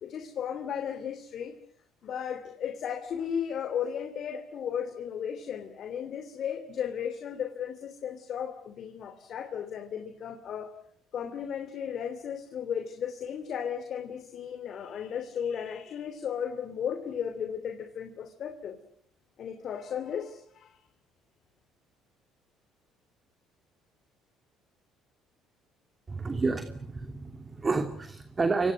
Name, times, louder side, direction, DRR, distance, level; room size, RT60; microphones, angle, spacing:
voice 1, 0.0-1.5 2.0-10.7 11.1-18.8 19.4-20.8, left 8 dB, 55° left, 6 dB, 3.1 m, -35 dB
voice 2, 26.1-28.7, right 3 dB, 30° right, 7 dB, 2.8 m, -30 dB
30.0 x 26.0 x 6.4 m, 0.66 s
hypercardioid pair, 60°, 0 cm